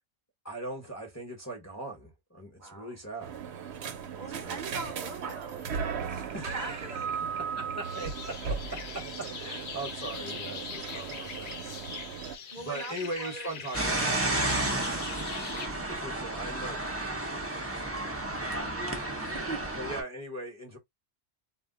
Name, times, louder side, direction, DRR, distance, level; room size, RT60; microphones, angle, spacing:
voice 1, 0.4-3.4 4.2-4.8 6.2-11.6 11.8-14.2 15.9-19.5 19.8-20.8, right 2 dB, 20° left, 0.7 m, -41 dB
sound 1, 3.2-12.3, right 6 dB, 85° right, 0.9 m, -37 dB
voice 2, 4.2-5.7 6.1-6.3 6.5-7.1 10.9-11.4 12.5-15.2 19.2-19.7, right 4 dB, 55° right, 0.7 m, -42 dB
sound 2, 7.8-15.7, left 6 dB, 60° left, 0.7 m, -42 dB
sound 3, 13.7-20.0, right 2 dB, 20° right, 0.4 m, -32 dB
2.2 x 2.1 x 3.6 m
omnidirectional pair, 1.1 m